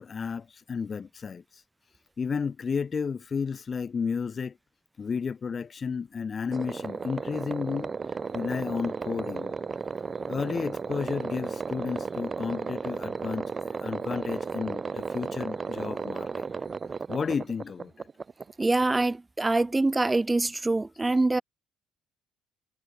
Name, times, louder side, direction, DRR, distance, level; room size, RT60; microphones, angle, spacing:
voice 1, 0.0-1.6 2.2-4.6 5.0-7.9 8.3-9.5 10.3-16.4 17.1-17.9, left 6 dB, 40° left, 5.1 m, -32 dB
sound 1, 6.5-19.1, right 5 dB, 35° right, 2.9 m, -34 dB
voice 2, 18.6-21.4, right 2 dB, 20° right, 1.8 m, -24 dB
hypercardioid pair, 50°, 0 cm